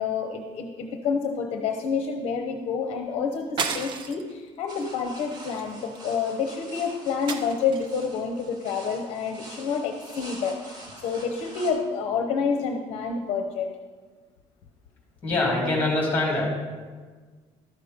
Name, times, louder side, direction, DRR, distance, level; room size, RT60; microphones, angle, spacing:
voice 1, 0.0-13.7, left 5 dB, 55° left, 4 dB, 0.8 m, -28 dB
sound 1, 3.6-4.3 4.8-5.0 5.3-6.3 7.3-8.0, right 5 dB, 40° right, 0.6 m, -33 dB
sound 2, 4.7-11.7, right 1 dB, 80° right, 2.8 m, -45 dB
voice 2, 15.2-16.5, left 2 dB, 15° left, -1 dB, 2.7 m, -24 dB
12.5 x 6.7 x 5.1 m, 1.5 s
cardioid pair, 180°, 12 cm